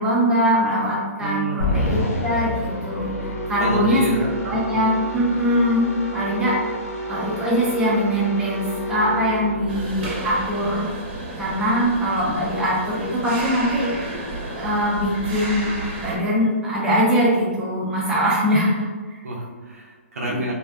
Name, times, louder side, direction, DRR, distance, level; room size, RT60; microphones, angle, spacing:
voice 1, 0.0-4.2 4.4-5.9 6.1-6.7 7.1-10.9 11.4-13.9 14.5-15.7 16.0-18.7 19.1-19.2 20.3-20.4, equal, 10° right, -6 dB, 0.5 m, -22 dB
voice 2, 1.2-2.1 3.6-4.2 19.2-20.5, right 1 dB, 85° right, -2 dB, 0.7 m, -28 dB
sound 1, 1.6-11.0, left 1 dB, 80° left, 0.6 m, -29 dB
sound 2, 9.7-16.2, right 1 dB, 40° right, 0.8 m, -32 dB
2.6 x 2.2 x 2.3 m, 1.4 s
hypercardioid pair, 145°, 8 cm